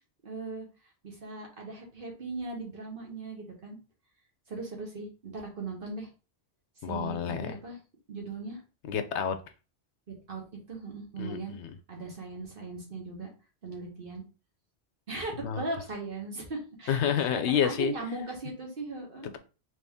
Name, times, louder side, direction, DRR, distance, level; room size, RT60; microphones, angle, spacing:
voice 1, 0.2-0.7 1.0-3.8 4.5-6.1 6.9-7.8 8.1-8.6 10.3-10.4 10.7-11.6 11.9-13.3 13.6-14.2 15.1-17.3 17.6-19.3, right 3 dB, 50° right, 0 dB, 1.4 m, -38 dB
voice 2, 6.8-7.6 8.9-9.4 11.2-11.7 15.4-15.6 16.9-17.9, left 8 dB, 75° left, 8 dB, 0.9 m, -29 dB
4.1 x 2.9 x 3.5 m, 0.33 s
omnidirectional pair, 1.2 m